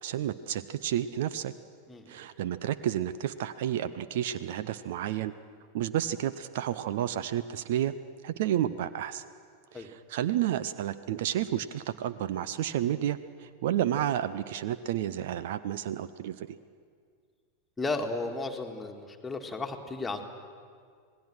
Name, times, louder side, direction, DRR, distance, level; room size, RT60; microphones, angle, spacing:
voice 1, 0.0-1.5 2.1-5.3 5.7-7.9 8.2-9.2 9.7-16.6, right 11 dB, 55° right, 15 dB, 0.6 m, -31 dB
voice 2, 17.8-20.3, left 3 dB, 10° left, 4 dB, 2.0 m, -34 dB
27.0 x 19.0 x 6.3 m, 2.1 s
figure-of-eight pair, 90°, 0 cm